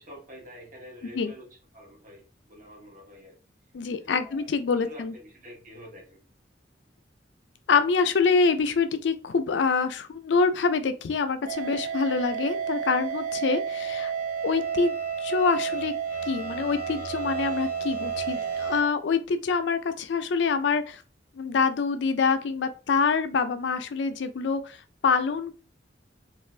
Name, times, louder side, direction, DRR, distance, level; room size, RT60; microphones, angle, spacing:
voice 1, 0.0-1.5 1.7-3.4 4.2-6.2 13.8-14.2, equal, 50° right, -1 dB, 1.2 m, -47 dB
voice 2, 3.7-5.1 7.7-14.1 14.4-14.9 15.2-15.9 16.3-21.0 21.4-24.8 25.0-25.5, left 5 dB, 75° left, 9 dB, 0.4 m, -25 dB
sound 1, 11.5-18.8, right 7 dB, 15° right, 0.8 m, -31 dB
2.4 x 2.4 x 3.2 m, 0.35 s
head